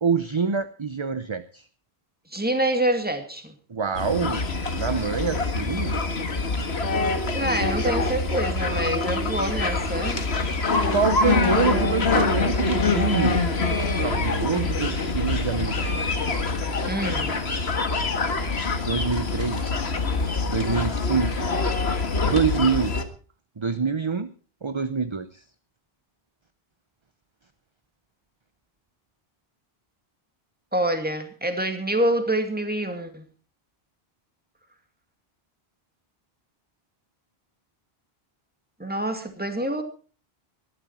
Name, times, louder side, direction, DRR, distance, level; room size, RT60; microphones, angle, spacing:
voice 1, 0.0-1.6 3.7-4.4 4.8-6.0 7.4-7.5 10.9-13.4 14.0-16.0 18.8-19.9 20.5-21.4 22.2-23.0 23.6-24.3 24.6-25.4, right 5 dB, 30° right, 11 dB, 0.8 m, -26 dB
voice 2, 2.3-3.5 7.3-10.3 16.9-17.4 30.7-33.2 38.8-39.8, right 1 dB, 10° right, 6 dB, 2.2 m, -26 dB
sound 1, 3.9-23.0, left 3 dB, 85° left, 2.0 m, -25 dB
19.5 x 13.0 x 4.3 m, 0.39 s
omnidirectional pair, 1.0 m